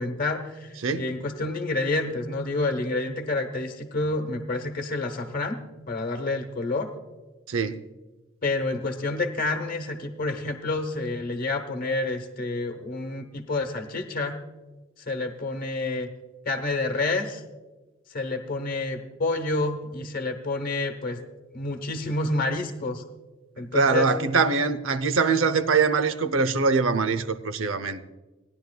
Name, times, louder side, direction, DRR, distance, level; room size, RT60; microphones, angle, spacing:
voice 1, 0.0-5.6 5.9-6.9 8.4-14.4 15.1-16.1 16.4-17.4 18.1-21.2 21.5-23.0 23.6-24.1, left 2 dB, 45° left, 1.1 m, -28 dB
voice 2, 7.5-7.8 23.6-28.0, right 4 dB, 75° right, 0.7 m, -23 dB
18.5 x 10.5 x 2.3 m
head